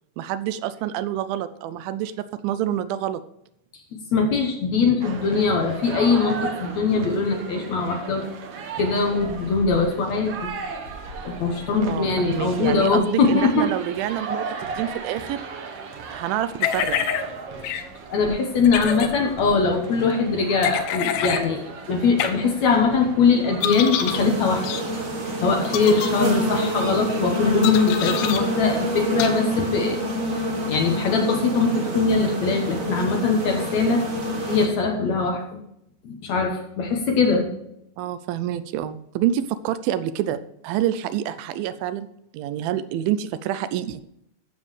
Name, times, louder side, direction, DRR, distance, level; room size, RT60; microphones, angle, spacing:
voice 1, 0.2-3.2 11.9-15.5 16.1-17.0 38.0-42.1 42.3-44.0, right 11 dB, 80° right, 13 dB, 2.4 m, -27 dB
voice 2, 4.1-8.3 8.8-10.5 11.3-13.7 18.1-21.6 21.9-24.7 25.4-30.0 30.7-34.0 34.5-35.6 36.0-37.5, left 4 dB, 65° left, 3 dB, 2.0 m, -21 dB
sound 1, 5.0-24.2, right 4 dB, 60° right, 1.6 m, -36 dB
sound 2, 16.6-17.2 17.6-17.8 18.6-19.1 20.6-21.4 22.2-22.3 23.6-24.2 24.6-24.8 25.7-26.1 27.6-28.4 29.2-29.3, left 9 dB, 90° left, 2.7 m, -26 dB
sound 3, 24.1-34.7, equal, 40° right, 1.2 m, -27 dB
15.0 x 7.1 x 3.2 m, 0.79 s
omnidirectional pair, 4.2 m